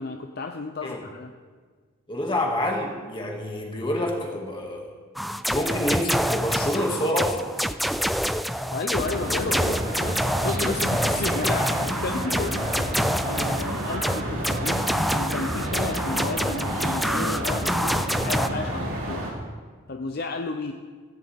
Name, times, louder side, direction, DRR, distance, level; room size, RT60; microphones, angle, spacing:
voice 1, 0.0-1.3 8.7-19.3 19.9-20.7, left 3 dB, 50° left, 5 dB, 0.6 m, -33 dB
voice 2, 2.1-4.9 5.5-7.5 18.2-18.3, left 1 dB, 25° left, 0 dB, 2.1 m, -27 dB
sound 1, 5.2-18.5, equal, ahead, 0.3 m, -27 dB
sound 2, 8.9-19.3, right 1 dB, 85° right, 3.4 m, -31 dB
16.0 x 14.5 x 3.6 m, 1.5 s
head